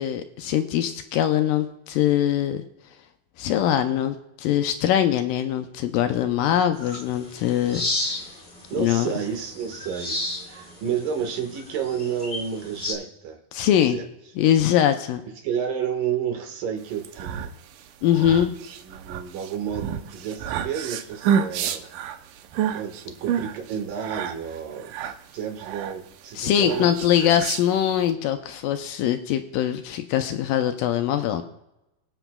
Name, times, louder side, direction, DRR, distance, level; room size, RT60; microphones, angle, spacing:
voice 1, 0.0-2.6 3.4-8.3 8.8-9.1 13.5-14.0 14.4-15.2 18.0-18.6 26.4-31.4, left 10 dB, 85° left, 8 dB, 2.0 m, -22 dB
sound 1, 6.8-12.9, left 2 dB, 20° left, 1.6 m, -33 dB
voice 2, 8.7-13.4 13.9-14.0 15.4-17.5 18.8-21.9 22.7-24.9 25.3-26.9 27.2-27.4, right 8 dB, 65° right, 3 dB, 3.0 m, -30 dB
sound 2, 16.9-28.1, right 8 dB, 80° right, 1.9 m, -30 dB
23.5 x 7.9 x 2.3 m, 0.89 s
omnidirectional pair, 4.4 m